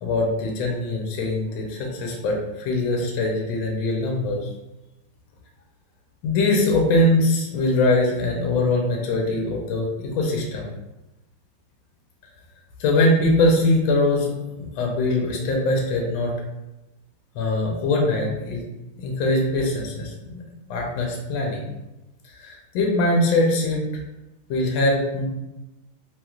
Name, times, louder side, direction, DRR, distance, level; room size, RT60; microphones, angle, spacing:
voice 1, 0.0-4.4 6.2-10.7 12.8-14.3 14.6-16.3 17.3-18.6 19.0-20.4 20.7-21.7 22.3-23.8 24.5-25.3, left 2 dB, 75° left, 0 dB, 1.3 m, -22 dB
3.2 x 3.0 x 2.3 m, 0.97 s
omnidirectional pair, 2.4 m